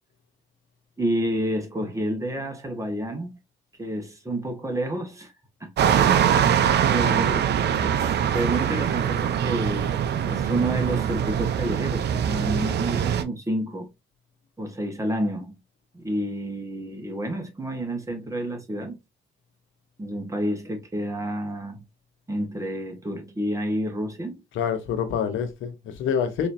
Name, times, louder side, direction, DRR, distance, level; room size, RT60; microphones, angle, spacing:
voice 1, 1.0-3.4 3.8-5.3 5.6-5.7 6.8-8.1 8.3-13.9 14.6-15.6 15.9-19.0 20.0-21.8 22.3-24.4, right 1 dB, 15° right, 1.3 m, -29 dB
sound 1, 5.8-13.2, right 9 dB, 60° right, 0.6 m, -23 dB
voice 2, 24.5-26.5, left 7 dB, 80° left, 0.9 m, -26 dB
4.1 x 2.8 x 2.6 m
cardioid pair, 90°, 20 cm